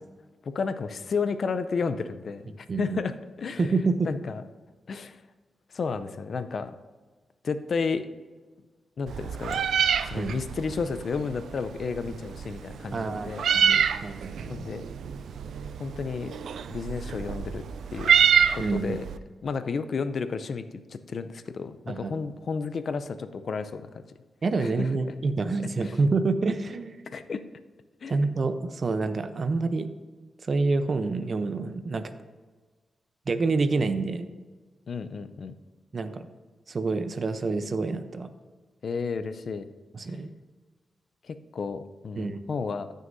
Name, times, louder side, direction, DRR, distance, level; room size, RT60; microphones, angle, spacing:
voice 1, 0.4-3.1 3.4-3.7 4.1-4.4 4.9-5.2 5.7-6.7 7.4-8.1 9.0-9.6 10.0-13.5 14.5-14.8 15.8-16.3 16.7-17.7 17.9-18.1 18.5-19.0 19.4-23.9 24.6-24.9 25.8-25.9 27.1-27.4 28.0-28.2 34.9-35.5 38.8-39.7 41.2-42.9, left 5 dB, 65° left, 11 dB, 0.5 m, -32 dB
voice 2, 2.7-3.0 3.6-4.1 10.1-10.4 12.9-14.5 18.6-19.0 21.9-22.1 24.4-27.0 28.1-29.9 30.4-32.1 33.3-34.3 35.9-36.3 36.7-38.3 39.9-40.3 42.2-42.4, right 3 dB, 55° right, 10 dB, 0.7 m, -27 dB
Meow, 9.1-19.2, right 8 dB, 80° right, 0.3 m, -27 dB
14.0 x 6.5 x 2.7 m, 1.4 s
cardioid pair, 55°, 0 cm